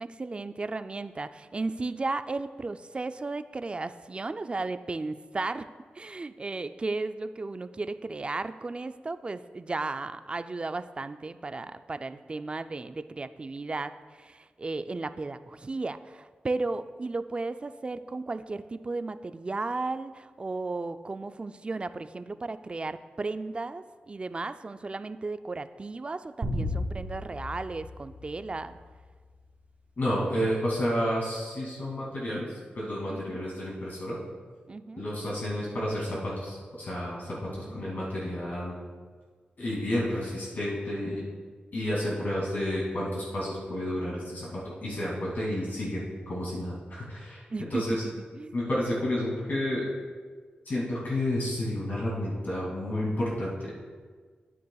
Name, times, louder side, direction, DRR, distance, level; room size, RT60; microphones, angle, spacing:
voice 1, 0.0-5.7 5.9-28.8 33.1-33.4 34.7-35.0 37.4-38.1 47.5-48.6, right 3 dB, 30° right, 11 dB, 0.4 m, -35 dB
sound 1, 26.4-29.0, left 1 dB, 55° right, 2.4 m, -35 dB
voice 2, 30.0-34.2 35.0-38.8 39.6-41.2 41.7-47.4 47.7-48.0 48.5-49.9 50.7-53.7, left 1 dB, 65° left, -5 dB, 2.4 m, -31 dB
12.5 x 9.3 x 2.3 m, 1.5 s
wide cardioid pair, 85°, 3 cm